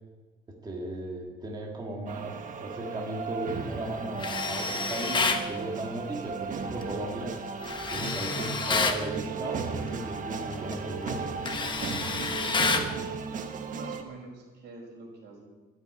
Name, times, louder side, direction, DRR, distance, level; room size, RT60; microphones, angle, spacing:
voice 1, 0.6-7.4 7.9-11.2, right 2 dB, 25° right, -1 dB, 1.9 m, -36 dB
sound 1, 2.1-14.0, right 5 dB, 50° right, 1.3 m, -36 dB
Tools, 4.2-5.5 7.6-9.0 10.5-10.7 11.1-12.9, left 4 dB, 25° left, 1.1 m, -29 dB
voice 2, 12.4-13.0 13.7-15.4, right 2 dB, 75° right, 0 dB, 5.4 m, -45 dB
13.5 x 8.1 x 9.6 m, 1.3 s
cardioid pair, 140°, 18 cm